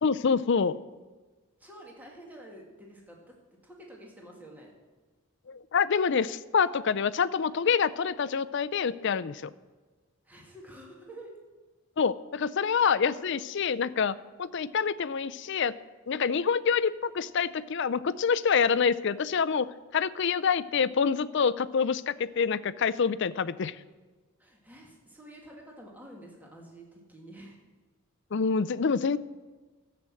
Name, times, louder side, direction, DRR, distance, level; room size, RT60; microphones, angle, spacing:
voice 1, 0.0-0.8 5.5-9.5 12.0-15.8 16.1-23.8 28.3-29.2, left 6 dB, 55° left, 15 dB, 0.5 m, -26 dB
voice 2, 1.6-3.3 3.6-4.7 10.2-11.4 24.4-27.6, right 1 dB, 10° right, -1 dB, 2.1 m, -49 dB
13.5 x 7.9 x 7.6 m, 1.3 s
head